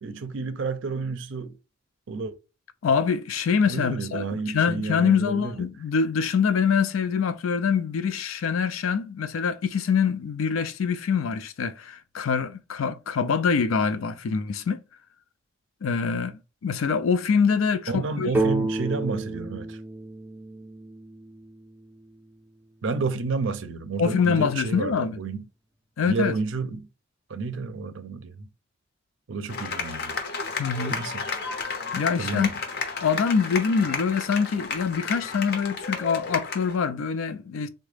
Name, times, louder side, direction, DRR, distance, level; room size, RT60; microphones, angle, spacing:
voice 1, 0.0-1.6 2.1-2.3 3.7-5.7 17.9-19.8 22.8-25.5 26.0-26.9 27.3-28.5 29.3-30.2 30.9-31.3 32.2-32.6, right 4 dB, 70° right, 0.5 m, -30 dB
voice 2, 2.8-14.8 15.8-18.3 24.0-25.2 26.0-26.4 30.6-30.9 31.9-32.5 33.0-37.7, left 6 dB, 80° left, 0.4 m, -24 dB
sound 1, 18.3-22.0, right 2 dB, 10° right, 0.4 m, -30 dB
sound 2, 29.5-36.8, left 4 dB, 50° left, 0.7 m, -32 dB
3.6 x 2.1 x 3.3 m
head